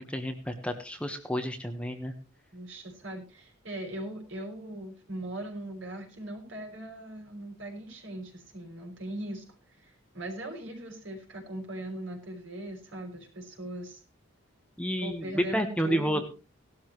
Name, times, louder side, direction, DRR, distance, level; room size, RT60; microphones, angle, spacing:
voice 1, 0.0-2.1 14.8-16.2, equal, 5° left, 6 dB, 1.2 m, -30 dB
voice 2, 2.5-9.4 9.8-14.0 15.0-16.2, right 1 dB, 65° right, 2 dB, 5.9 m, -39 dB
18.0 x 12.5 x 3.1 m, 0.33 s
head